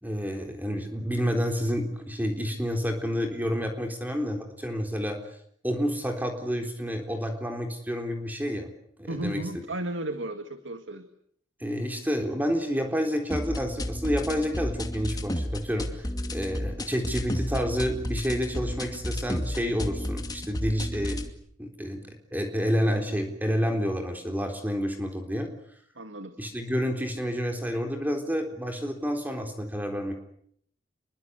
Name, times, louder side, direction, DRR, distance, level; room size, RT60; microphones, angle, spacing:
voice 1, 0.0-5.2 5.6-8.7 9.0-9.4 11.6-21.2 21.6-25.5 26.4-30.1, equal, 10° right, 4 dB, 3.9 m, -29 dB
voice 2, 9.1-11.1 26.0-26.4, right 1 dB, 65° right, 8 dB, 2.1 m, -34 dB
sound 1, 13.3-21.3, left 1 dB, 20° left, 2.5 m, -32 dB
30.0 x 23.0 x 8.2 m, 0.68 s
head